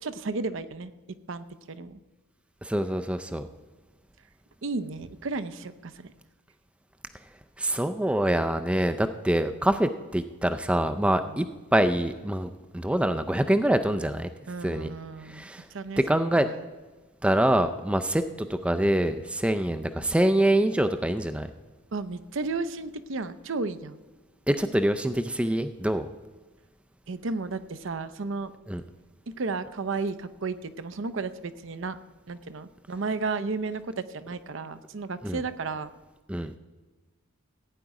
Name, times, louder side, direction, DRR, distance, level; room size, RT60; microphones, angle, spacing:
voice 1, 0.0-2.0 4.6-6.1 11.2-11.5 14.5-16.6 21.9-24.0 27.1-28.5 29.3-32.0 32.3-35.9, right 3 dB, 60° right, 13 dB, 0.6 m, -33 dB
voice 2, 2.6-3.5 7.6-11.5 11.7-14.3 14.6-14.9 15.3-15.6 16.0-16.5 17.2-21.5 24.5-26.1 28.7-28.8 35.2-35.4 36.3-36.5, right 1 dB, 5° right, 9 dB, 0.4 m, -25 dB
15.5 x 9.1 x 4.8 m, 1.2 s
head